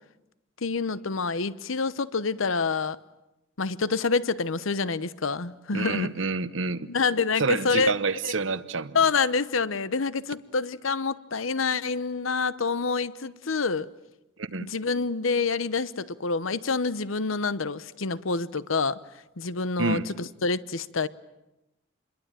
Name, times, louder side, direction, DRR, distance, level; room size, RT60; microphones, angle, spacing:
voice 1, 0.6-3.0 3.6-6.1 6.9-7.9 8.2-8.3 8.9-13.9 14.6-19.0 19.4-21.1, left 4 dB, 90° left, 0.9 m, -27 dB
voice 2, 5.7-6.9 7.4-9.0 14.4-14.7 19.8-20.1, right 4 dB, 75° right, 1.0 m, -28 dB
28.0 x 22.0 x 9.0 m
head